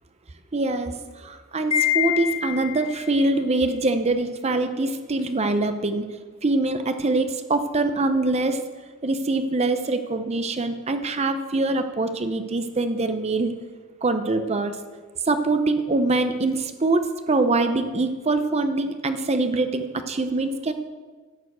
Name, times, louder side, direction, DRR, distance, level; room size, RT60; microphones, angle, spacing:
voice 1, 0.5-6.1 6.4-8.6 9.0-13.5 14.0-14.8 15.3-20.7, right 2 dB, 30° right, 8 dB, 0.6 m, -24 dB
Wind chime, 1.7-3.1, left 11 dB, 30° left, 2.3 m, -25 dB
11.0 x 6.8 x 7.9 m, 1.4 s
head